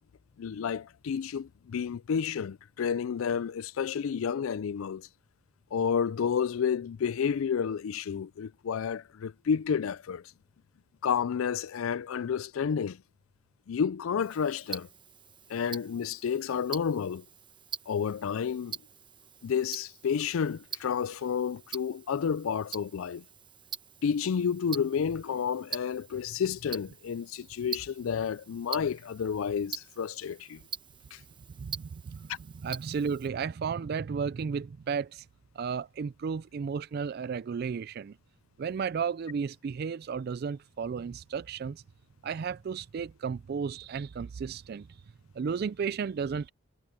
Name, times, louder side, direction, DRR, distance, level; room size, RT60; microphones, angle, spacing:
voice 1, 0.4-5.1 5.7-10.2 11.0-13.0 13.7-14.9 15.5-17.2 17.9-18.8 19.4-23.2 24.0-30.6 31.1-31.2, left 7 dB, 80° left, 0.4 m, -30 dB
Tick-tock, 14.2-33.3, right 6 dB, 25° right, 1.1 m, -45 dB
voice 2, 31.6-35.3 35.6-38.2 38.6-41.8 42.2-44.9 45.3-46.5, right 6 dB, 50° right, 0.3 m, -33 dB
head